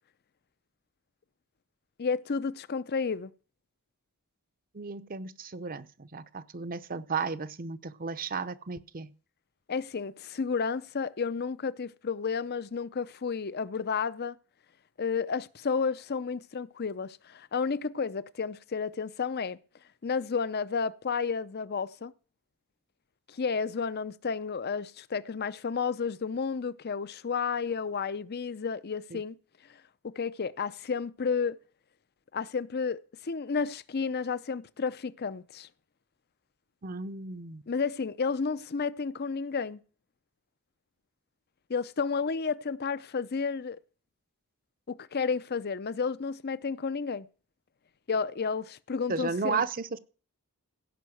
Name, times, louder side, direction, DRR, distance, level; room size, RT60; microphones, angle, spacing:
voice 1, 2.0-3.3 9.7-14.4 15.0-19.6 20.0-22.1 23.3-29.4 30.0-31.6 32.3-35.7 37.7-39.8 41.7-43.8 44.9-47.3 48.1-49.6, left 5 dB, 45° left, 0.6 m, -31 dB
voice 2, 4.7-9.1 29.1-29.2 36.8-37.6 49.1-50.0, right 5 dB, 40° right, 0.7 m, -34 dB
16.5 x 5.6 x 7.8 m
head